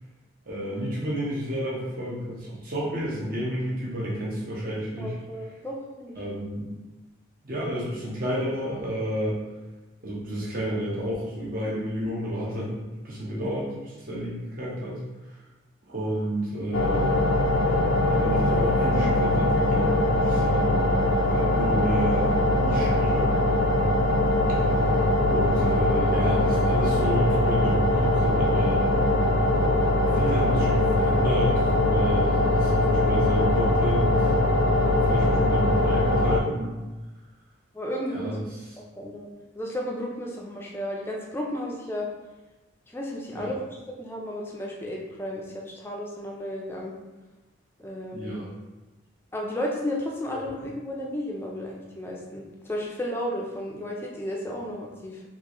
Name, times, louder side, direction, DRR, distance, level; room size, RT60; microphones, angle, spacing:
voice 1, 0.5-5.1 6.2-6.7 7.4-9.4 10.0-12.7 13.0-15.0 15.9-17.2 18.1-20.8 21.3-23.3 24.5-24.6 25.3-28.9 30.1-34.2 34.8-36.8 38.1-38.4 43.3-43.5 48.1-48.5, equal, 45° right, -5 dB, 0.9 m, -30 dB
voice 2, 5.0-6.2 14.1-14.4 34.6-35.1 37.7-38.4 39.0-39.3 39.6-42.1 42.9-46.9 47.8-48.4 49.3-55.2, left 1 dB, 10° left, -2 dB, 0.4 m, -33 dB
sound 1, 16.7-36.4, left 1 dB, 90° left, 0.4 m, -22 dB
3.7 x 2.5 x 3.0 m, 1.1 s
head